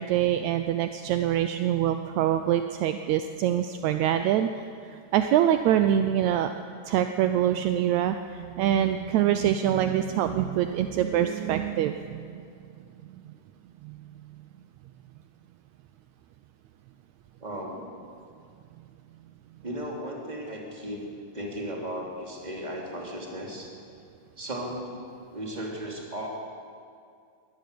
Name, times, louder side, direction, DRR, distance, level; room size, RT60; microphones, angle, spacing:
voice 1, 0.0-4.6 4.9-6.5 6.9-12.4 13.8-14.0, right 11 dB, 80° right, 8 dB, 1.6 m, -25 dB
voice 2, 17.4-18.0 19.6-21.0 21.3-23.7 24.4-25.0 25.3-26.3, equal, 10° right, -2 dB, 2.9 m, -35 dB
21.5 x 17.5 x 6.9 m, 2.3 s
omnidirectional pair, 4.0 m